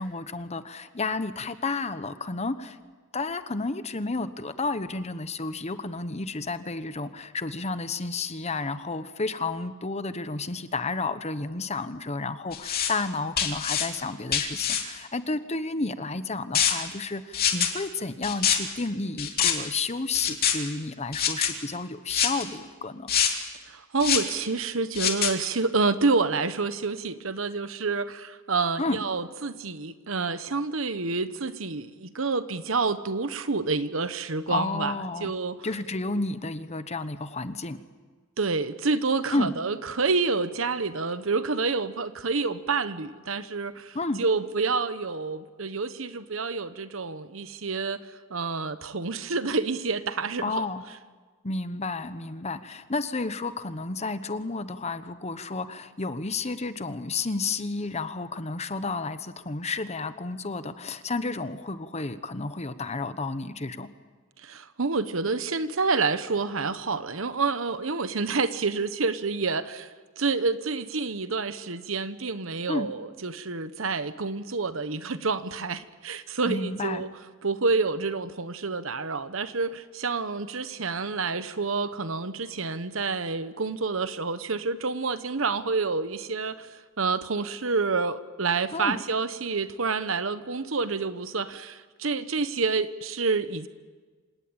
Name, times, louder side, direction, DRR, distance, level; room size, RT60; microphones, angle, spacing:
voice 1, 0.0-2.8 3.1-23.1 28.8-29.0 34.5-35.3 35.6-37.8 39.3-39.5 43.9-44.2 50.4-50.8 51.4-63.9 72.7-72.9 76.4-77.0 88.7-89.0, left 3 dB, 35° left, 12 dB, 1.1 m, -31 dB
sound 1, 12.5-12.9 13.4-13.9 14.3-14.8 16.5-16.7 17.3-17.7 18.2-18.6 19.2-19.5 20.1-20.5 21.1-21.5 22.1-22.4 23.1-23.3 24.0-24.3 24.9-25.3, left 9 dB, 50° left, 3.0 m, -24 dB
voice 2, 23.7-34.9 35.2-35.7 38.4-48.0 48.3-50.7 64.4-77.1 77.4-86.7 87.0-93.7, right 4 dB, 70° right, 12 dB, 1.1 m, -28 dB
26.5 x 18.5 x 8.8 m, 1.4 s
head